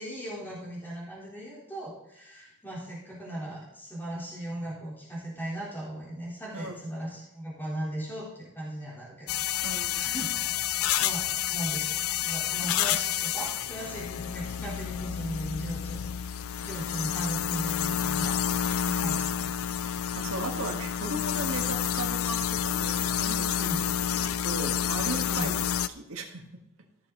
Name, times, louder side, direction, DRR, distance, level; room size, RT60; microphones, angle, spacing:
voice 1, 0.0-10.6 11.0-16.0 16.6-18.4 19.0-19.5 23.6-23.8 25.2-25.5, right 1 dB, 10° left, -7 dB, 3.5 m, -38 dB
sound 1, 9.3-25.9, left 9 dB, 80° left, 0.5 m, -29 dB
voice 2, 9.6-10.1 17.0-17.1 18.9-19.1 19.9-25.5 25.9-26.6, right 2 dB, 80° right, 2 dB, 1.8 m, -37 dB
15.0 x 6.6 x 3.9 m, 0.81 s
head